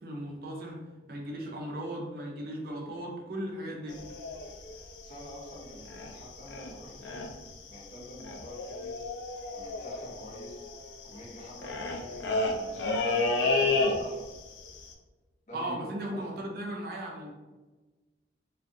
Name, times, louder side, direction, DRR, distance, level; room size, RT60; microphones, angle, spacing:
voice 1, 0.0-4.0 15.5-17.3, right 1 dB, 55° right, -1 dB, 0.5 m, -37 dB
sound 1, 3.9-6.2 6.5-6.7 7.0-7.5 7.8-7.9 8.0-14.4 14.7-14.9, left 3 dB, 80° left, 0.3 m, -31 dB
voice 2, 5.0-7.3 7.7-9.1 9.5-10.6 11.0-14.2 15.5-16.5, equal, 40° left, -4 dB, 0.7 m, -47 dB
2.4 x 2.3 x 2.6 m, 1.2 s
head